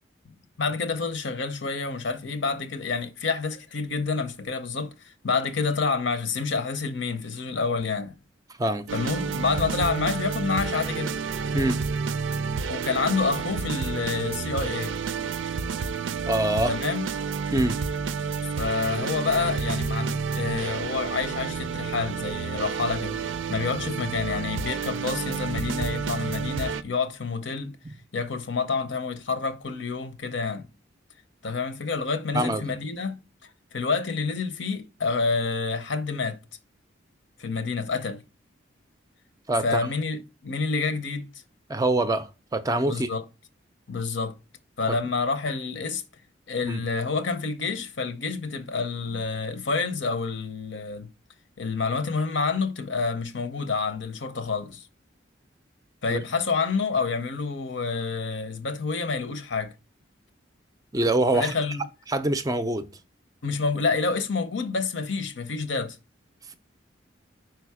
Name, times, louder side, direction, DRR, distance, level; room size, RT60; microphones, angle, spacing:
voice 1, 0.6-8.1 8.9-11.2 12.7-14.9 16.7-17.1 18.6-27.7 28.1-30.7 31.4-33.2 33.7-36.4 37.4-38.2 39.6-41.3 42.9-43.2 43.9-44.3 44.8-46.0 46.5-51.1 51.6-54.9 56.0-59.7 61.3-61.8 63.4-66.0, left 4 dB, 75° left, 0.7 m, -28 dB
sound 1, 8.9-26.8, right 5 dB, 85° right, 0.5 m, -30 dB
voice 2, 16.3-16.7 17.5-17.8 27.8-27.9 32.3-32.6 39.5-39.8 41.7-43.1 46.6-46.8 56.1-56.2 60.9-61.5 62.1-62.9, right 1 dB, 20° right, 0.4 m, -24 dB
5.0 x 4.6 x 4.7 m
head